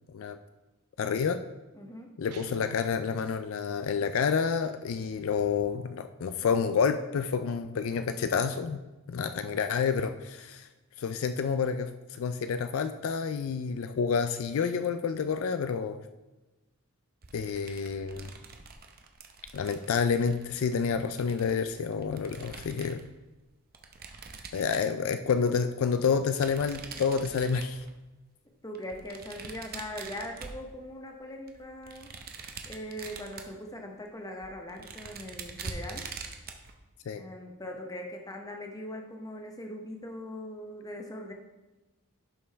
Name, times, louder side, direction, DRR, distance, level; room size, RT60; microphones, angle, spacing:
voice 1, 1.0-1.4 2.2-8.8 9.1-10.7 11.0-16.0 17.3-18.3 19.5-23.0 24.5-27.8 37.1-37.2, left 6 dB, 65° left, 9 dB, 0.4 m, -29 dB
voice 2, 1.7-2.1 28.6-32.1 32.6-36.0 37.2-41.3, left 1 dB, 15° left, 2 dB, 0.8 m, -41 dB
Guitar, 2.3-3.5, right 3 dB, 85° right, 0.6 m, -48 dB
sound 1, 17.2-23.1 23.7-25.3 26.2-28.0 28.7-31.1 31.5-33.6 34.1-34.2 34.4-36.7, right 4 dB, 45° right, 0.7 m, -44 dB
11.0 x 5.3 x 3.4 m, 1.1 s
head